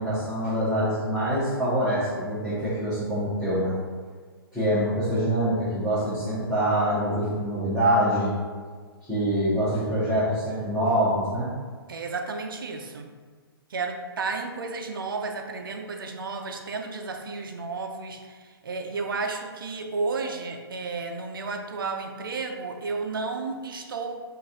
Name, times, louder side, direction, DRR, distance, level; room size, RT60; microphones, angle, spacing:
voice 1, 0.0-3.7 4.5-8.3 9.1-11.5, equal, ahead, -15 dB, 1.1 m, -25 dB
voice 2, 11.9-13.1 13.7-24.2, right 4 dB, 60° right, 4 dB, 0.5 m, -32 dB
3.9 x 2.5 x 3.6 m, 1.5 s
figure-of-eight pair, 125°, 13 cm